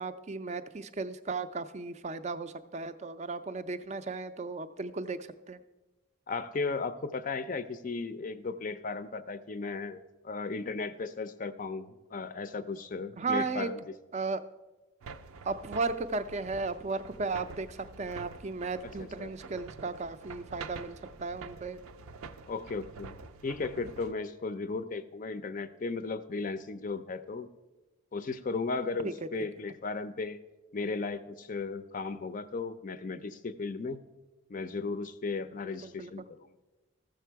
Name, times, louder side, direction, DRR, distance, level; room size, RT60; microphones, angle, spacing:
voice 1, 0.0-5.6 13.2-13.7 14.1-14.4 15.4-21.8 29.0-29.1 35.8-36.1, right 3 dB, 30° right, 12 dB, 0.4 m, -35 dB
voice 2, 6.3-13.9 19.0-19.3 22.5-23.2 23.4-27.5 28.1-30.4 30.7-34.0 34.5-36.4, left 4 dB, 40° left, 12 dB, 0.4 m, -36 dB
sound 1, 15.0-24.1, right 4 dB, 80° right, 0.5 m, -47 dB
14.0 x 6.7 x 4.6 m, 1.1 s
head